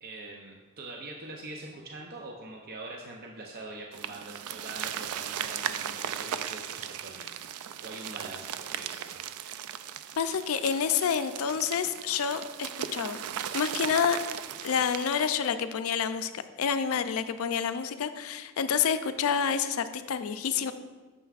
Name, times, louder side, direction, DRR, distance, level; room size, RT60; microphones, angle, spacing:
voice 1, 0.0-7.4 7.8-9.2, right 2 dB, 45° right, -1 dB, 0.6 m, -43 dB
sound 1, 3.9-15.4, right 9 dB, 90° right, 0.4 m, -37 dB
voice 2, 10.2-13.2 13.5-14.2 14.6-16.3 16.6-20.7, left 7 dB, 70° left, 11 dB, 0.4 m, -28 dB
9.1 x 6.9 x 2.4 m, 1.3 s
head